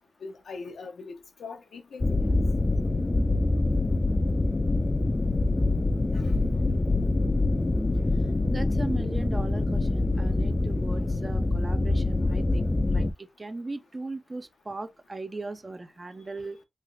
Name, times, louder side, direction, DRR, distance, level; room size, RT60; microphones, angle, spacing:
voice 1, 0.2-2.3, left 4 dB, 80° left, 0.8 m, -41 dB
sound 1, 2.0-13.1, left 2 dB, 30° left, 0.4 m, -25 dB
voice 2, 8.5-16.6, right 2 dB, 35° right, 0.5 m, -38 dB
3.2 x 2.9 x 2.6 m
cardioid pair, 65°, 0 cm